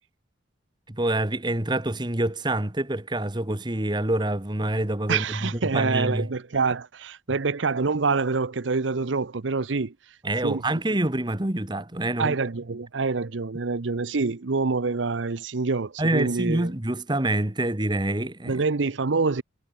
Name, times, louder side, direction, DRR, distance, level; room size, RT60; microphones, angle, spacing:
voice 1, 0.9-6.3 10.2-12.3 16.0-18.6, right 1 dB, 25° right, 1.5 m, -26 dB
voice 2, 5.1-9.9 10.4-10.6 12.2-16.7 18.5-19.4, right 4 dB, 80° right, 0.8 m, -26 dB
head